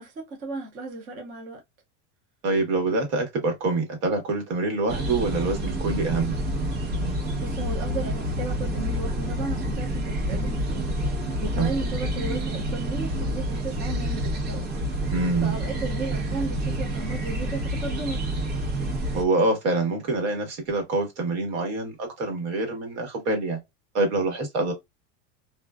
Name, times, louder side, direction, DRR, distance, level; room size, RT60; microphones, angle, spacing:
voice 1, 0.0-1.6 7.1-14.7 15.4-18.4, right 2 dB, 25° right, 0.4 m, -35 dB
voice 2, 2.4-6.3 11.6-11.7 15.1-15.5 19.1-23.6 23.9-24.7, right 3 dB, 70° right, 1.3 m, -25 dB
sound 1, 4.9-19.3, right 1 dB, 90° right, 1.1 m, -28 dB
2.4 x 2.3 x 2.2 m
cardioid pair, 175°, 35 cm